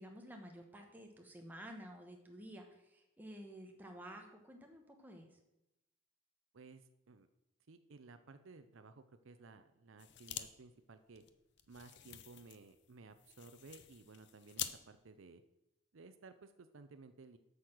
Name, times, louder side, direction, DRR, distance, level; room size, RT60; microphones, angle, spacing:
voice 1, 0.0-5.3, equal, 10° right, 2 dB, 1.1 m, -52 dB
voice 2, 6.5-7.3 7.7-11.2 11.7-15.4 15.9-17.4, right 3 dB, 65° right, 10 dB, 0.6 m, -57 dB
sound 1, 10.0-10.5 10.8-10.9 11.2-14.8, left 11 dB, 55° left, 0.6 m, -47 dB
8.2 x 6.5 x 6.0 m, 0.90 s
head